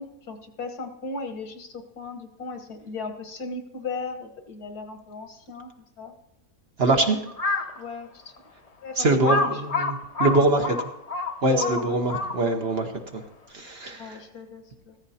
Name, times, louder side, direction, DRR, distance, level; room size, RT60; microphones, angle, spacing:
voice 1, 0.0-5.7 6.0-6.1 7.0-7.2 7.7-8.3 8.8-9.6 11.5-12.3 14.0-15.0, left 4 dB, 80° left, 6 dB, 1.9 m, -36 dB
voice 2, 6.8-7.2 9.0-10.9 11.4-13.2 13.5-14.2, right 2 dB, 45° right, 4 dB, 1.1 m, -23 dB
Crow, 7.3-7.8 8.4-8.5 9.2-12.6, left 2 dB, 35° left, 0.7 m, -27 dB
15.0 x 14.0 x 2.8 m, 0.85 s
omnidirectional pair, 1.6 m